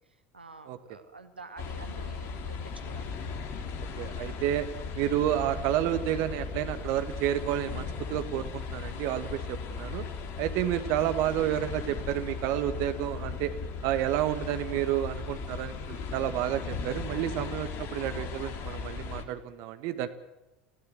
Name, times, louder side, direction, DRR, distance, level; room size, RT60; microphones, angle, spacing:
voice 1, 0.3-3.3, right 3 dB, 85° right, 8 dB, 2.1 m, -48 dB
sound 1, 1.6-19.2, left 5 dB, 50° left, 3.8 m, -37 dB
voice 2, 4.0-4.7 5.0-10.0 10.4-13.5 13.8-20.1, right 12 dB, 55° right, 10 dB, 1.7 m, -30 dB
30.0 x 17.0 x 7.6 m, 0.99 s
figure-of-eight pair, 75°, 5 cm